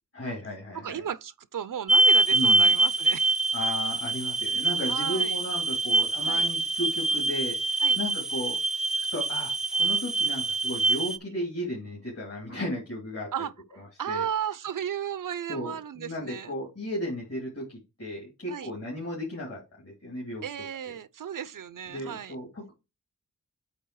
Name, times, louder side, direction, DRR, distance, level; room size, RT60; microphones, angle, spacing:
voice 1, 0.1-1.0 2.3-2.7 3.5-8.6 9.0-13.3 13.8-14.3 15.5-20.4 20.8-20.9 21.9-22.7, left 1 dB, 45° left, 3.0 m, -35 dB
voice 2, 0.7-3.3 4.9-5.4 6.3-6.5 7.8-8.0 13.3-13.5 14.0-16.5 18.5-18.7 20.4-22.3, right 9 dB, 70° right, 0.5 m, -34 dB
sound 1, 1.9-11.2, right 2 dB, ahead, 0.5 m, -25 dB
8.4 x 3.4 x 4.7 m
wide cardioid pair, 80°, 33 cm